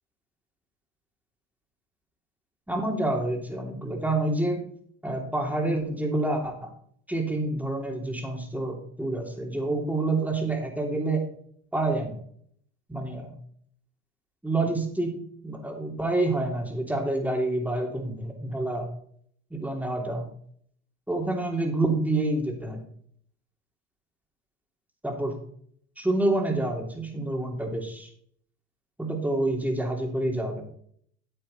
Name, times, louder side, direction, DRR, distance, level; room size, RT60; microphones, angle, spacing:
voice 1, 2.7-4.6 5.0-6.7 7.1-11.2 11.7-12.1 12.9-13.3 14.4-15.2 15.4-18.9 19.5-20.3 21.1-22.8 25.0-25.3 26.0-28.1 29.0-30.6, right 2 dB, 5° right, 1 dB, 2.9 m, -28 dB
9.0 x 8.6 x 4.2 m, 0.63 s
hypercardioid pair, 75°, 34 cm